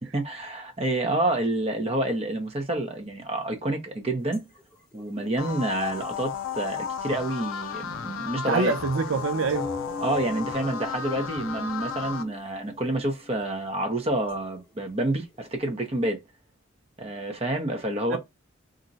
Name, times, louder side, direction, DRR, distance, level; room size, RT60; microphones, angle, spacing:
voice 1, 0.1-4.4 4.9-8.7 10.0-16.2 17.0-18.2, right 1 dB, 30° right, 0.6 m, -28 dB
sound 1, 4.3-5.9 6.5-7.7 7.9-8.0 8.5-8.6 9.3-16.1, left 4 dB, 5° left, 0.9 m, -41 dB
sound 2, 5.4-12.2, left 6 dB, 90° left, 0.4 m, -34 dB
voice 2, 8.5-9.7 18.1-18.2, right 4 dB, 75° right, 0.5 m, -25 dB
2.5 x 2.1 x 3.9 m
head